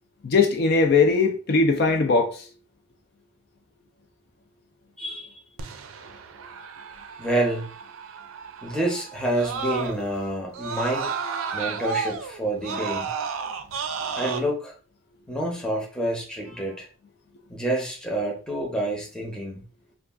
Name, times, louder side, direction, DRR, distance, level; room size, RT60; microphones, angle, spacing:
voice 1, 0.2-2.4, left 4 dB, 55° left, 0.4 m, -20 dB
Screaming, 5.6-10.2 10.5-14.4, right 5 dB, 85° right, 0.4 m, -32 dB
voice 2, 7.2-7.7 8.6-11.1 11.5-13.1 14.1-14.7 15.3-16.9 17.5-19.6, right 1 dB, 5° left, 0.7 m, -28 dB
2.3 x 2.3 x 3.5 m
head